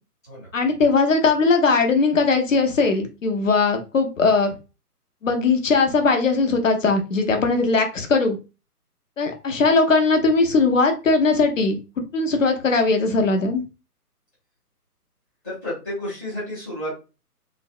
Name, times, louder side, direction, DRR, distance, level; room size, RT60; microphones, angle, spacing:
voice 1, 0.5-4.5 5.2-8.4 9.2-11.8 12.1-13.6, left 4 dB, 55° left, 4 dB, 0.7 m, -19 dB
voice 2, 15.4-17.0, left 1 dB, 10° left, -10 dB, 0.7 m, -31 dB
3.3 x 2.1 x 2.4 m, 0.30 s
figure-of-eight pair, 140°, 47 cm